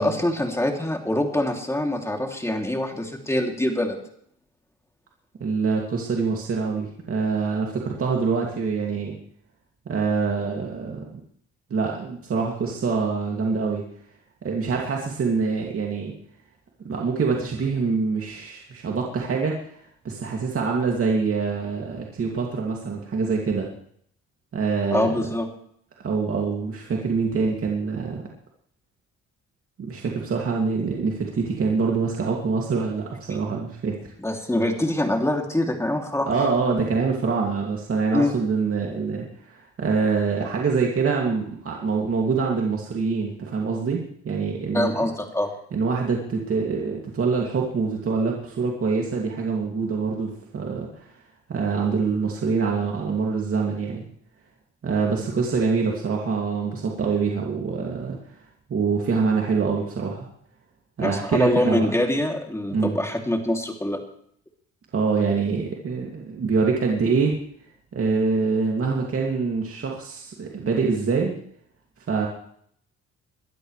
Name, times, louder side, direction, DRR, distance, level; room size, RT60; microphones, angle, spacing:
voice 1, 0.0-4.0 24.9-25.5 34.2-36.5 38.1-38.3 44.7-45.5 61.0-64.0, left 1 dB, 10° left, 2 dB, 2.9 m, -24 dB
voice 2, 5.4-9.2 9.9-11.2 11.7-13.8 14.4-16.1 16.8-19.8 20.0-23.7 24.5-25.2 26.0-28.2 29.8-34.0 36.3-44.9 45.7-51.1 51.5-54.0 54.8-58.4 58.7-60.3 61.0-61.9 62.7-63.0 64.9-67.4 67.9-71.3 72.1-72.3, right 4 dB, 45° right, -1 dB, 2.6 m, -25 dB
23.0 x 12.5 x 3.3 m, 0.65 s
cardioid pair, 90°, 30 cm